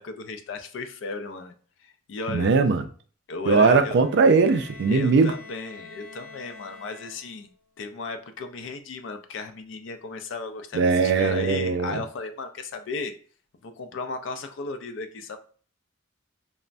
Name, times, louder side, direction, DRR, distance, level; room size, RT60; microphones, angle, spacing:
voice 1, 0.0-1.5 1.8-2.5 3.3-4.0 4.9-7.5 7.8-13.1 13.6-15.4, left 4 dB, 70° left, 0.4 m, -35 dB
voice 2, 2.3-2.8 3.5-5.3 10.7-12.0, right 4 dB, 60° right, 0.3 m, -20 dB
Bowed string instrument, 3.9-7.6, left 3 dB, 40° left, 1.5 m, -46 dB
3.2 x 2.0 x 2.5 m
head